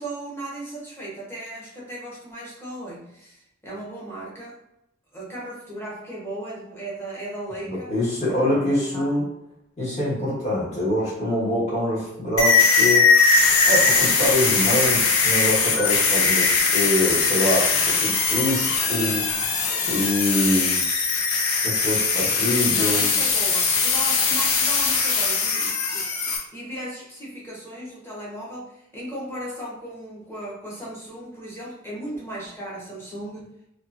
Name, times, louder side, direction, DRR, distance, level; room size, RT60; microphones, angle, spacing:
voice 1, 0.0-4.5 5.1-7.9 8.2-9.1 22.7-33.5, right 1 dB, 10° left, -6 dB, 0.8 m, -36 dB
voice 2, 7.7-9.2 9.8-13.1 13.6-19.6 19.9-20.8 21.6-23.1, left 1 dB, 30° left, -8 dB, 1.3 m, -25 dB
sound 1, 12.4-26.4, left 4 dB, 80° left, 0.5 m, -20 dB
2.9 x 2.4 x 2.4 m, 0.83 s
head